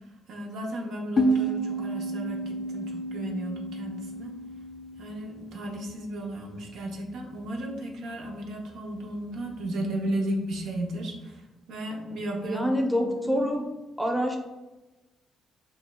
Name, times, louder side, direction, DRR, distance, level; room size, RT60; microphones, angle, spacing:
voice 1, 0.3-4.3 5.0-11.4 11.7-12.6 13.0-13.4, right 1 dB, 80° right, 0 dB, 0.7 m, -34 dB
sound 1, 1.2-6.5, right 1 dB, 45° left, 0.3 m, -31 dB
voice 2, 12.4-13.6 14.0-14.4, equal, ahead, 1 dB, 0.6 m, -26 dB
6.2 x 2.2 x 2.2 m, 1.1 s
cardioid pair, 90°, 0 cm